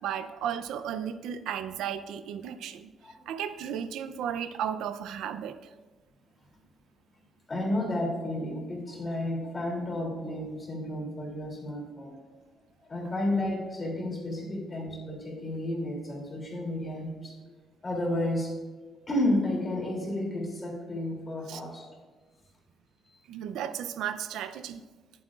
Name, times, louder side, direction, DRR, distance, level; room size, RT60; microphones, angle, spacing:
voice 1, 0.0-2.9 3.3-5.6 21.5-21.6 23.3-24.8, right 9 dB, 90° right, 11 dB, 0.5 m, -34 dB
voice 2, 7.5-12.1 12.9-17.4 17.8-18.5 19.1-21.8, left 1 dB, 25° left, -1 dB, 2.8 m, -31 dB
20.5 x 7.5 x 2.4 m, 1.3 s
cardioid pair, 150°, 0 cm